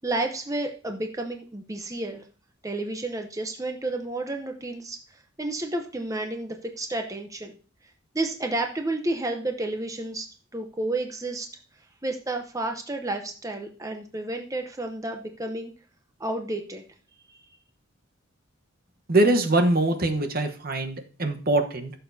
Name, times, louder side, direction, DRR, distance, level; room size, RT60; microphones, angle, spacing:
voice 1, 0.0-2.2 2.6-7.6 8.1-11.5 12.0-15.7 16.2-16.8 17.3-17.4, right 2 dB, 15° right, 4 dB, 0.8 m, -31 dB
voice 2, 19.1-21.9, right 2 dB, 50° right, 6 dB, 1.1 m, -23 dB
15.5 x 6.9 x 2.7 m, 0.40 s
head